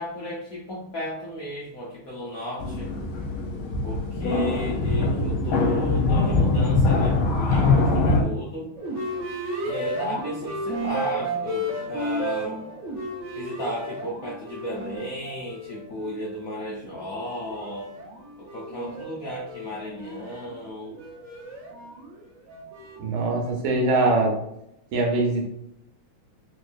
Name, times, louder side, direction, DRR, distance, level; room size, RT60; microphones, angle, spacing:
voice 1, 0.0-2.9 3.8-8.8 9.6-12.6 13.3-17.9 18.4-21.0, left 1 dB, 70° left, -4 dB, 0.8 m, -34 dB
sound 1, 2.6-8.2, left 3 dB, 85° left, 1.6 m, -22 dB
sound 2, 8.8-16.4 16.9-23.5, right 1 dB, 65° right, 0.7 m, -34 dB
voice 2, 23.0-24.4 24.9-25.5, right 2 dB, 80° right, 1 dB, 1.6 m, -22 dB
4.3 x 2.8 x 2.4 m, 0.79 s
omnidirectional pair, 2.3 m